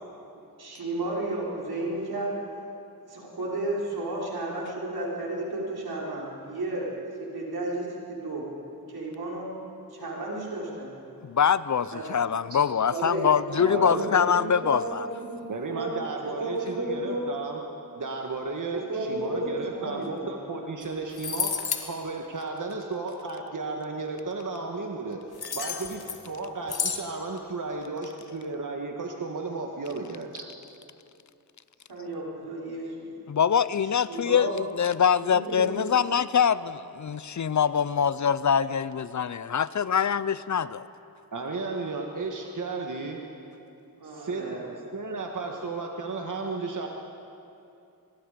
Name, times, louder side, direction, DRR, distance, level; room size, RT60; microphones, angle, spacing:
voice 1, 0.6-2.4 3.1-7.0 7.3-8.4 8.9-9.5 9.9-10.9 11.9-12.1 12.9-15.9 16.4-17.3 18.7-20.3 31.9-33.2 33.8-34.6 35.2-36.1 44.0-44.7 45.4-45.5, right 1 dB, 80° right, -4 dB, 4.8 m, -33 dB
voice 2, 11.2-15.1 33.3-40.8, left 7 dB, 50° left, 17 dB, 0.6 m, -24 dB
voice 3, 13.6-14.3 15.5-17.6 17.9-25.2 25.5-30.4 41.3-43.2 44.0-46.9, right 3 dB, 55° right, 2 dB, 1.7 m, -34 dB
sound 1, 20.8-20.9 21.1-21.9 25.4-26.3 26.7-27.0, left 6 dB, 90° left, 1.5 m, -30 dB
24.5 x 21.0 x 5.1 m, 2.7 s
cardioid pair, 65°, 37 cm